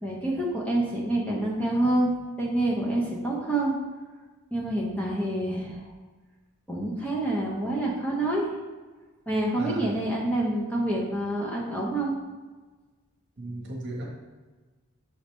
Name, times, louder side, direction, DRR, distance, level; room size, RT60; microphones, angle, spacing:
voice 1, 0.0-3.7 4.5-5.8 6.7-8.4 9.3-12.1, right 1 dB, 5° left, -4 dB, 0.9 m, -27 dB
voice 2, 9.5-9.9 13.4-14.0, right 1 dB, 50° right, -1 dB, 1.3 m, -35 dB
6.3 x 5.0 x 3.2 m, 1.3 s
head